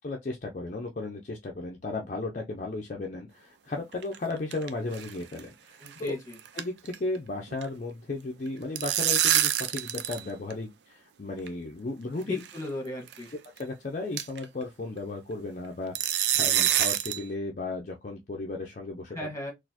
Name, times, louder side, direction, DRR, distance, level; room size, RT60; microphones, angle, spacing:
voice 1, 0.0-6.2 6.5-12.4 13.6-19.3, left 2 dB, 45° left, 0.5 m, -35 dB
sound 1, 3.9-4.7 4.9-5.1 5.4-5.5 5.9-6.1 6.3-7.2 7.4-7.7 8.5-10.2 10.5-10.6 11.5-11.6 12.4-12.6 13.1-13.2 13.6-13.7 14.2-14.5 16.0-17.2, right 11 dB, 75° right, 0.4 m, -26 dB
voice 2, 5.8-6.4 12.2-13.3 19.1-19.5, left 1 dB, 20° left, 1.4 m, -35 dB
4.1 x 2.5 x 2.8 m
head